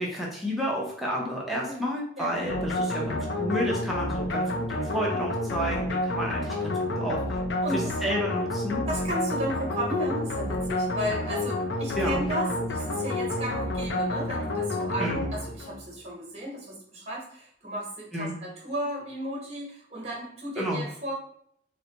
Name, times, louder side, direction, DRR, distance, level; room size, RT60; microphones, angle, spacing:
voice 1, 0.0-7.4 7.7-8.9 12.0-12.2 15.0-15.2 18.1-18.4 20.6-20.8, equal, ahead, -4 dB, 0.6 m, -31 dB
voice 2, 2.2-2.7 7.6-7.9 8.9-21.1, equal, 35° right, -2 dB, 1.1 m, -34 dB
sound 1, 2.5-15.8, left 1 dB, 65° left, 0.5 m, -29 dB
3.8 x 2.2 x 2.9 m, 0.68 s
head